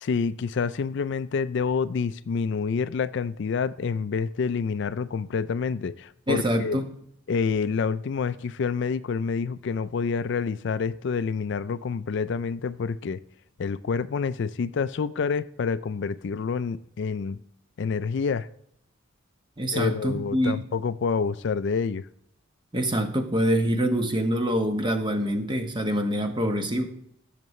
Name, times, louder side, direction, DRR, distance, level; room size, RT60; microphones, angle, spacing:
voice 1, 0.0-6.8 7.3-13.2 13.6-17.4 17.8-18.5 19.7-22.1, left 5 dB, 60° left, 0.4 m, -28 dB
voice 2, 6.3-6.9 19.6-20.6 22.7-26.9, equal, 25° right, 1.1 m, -25 dB
16.0 x 6.7 x 3.1 m
head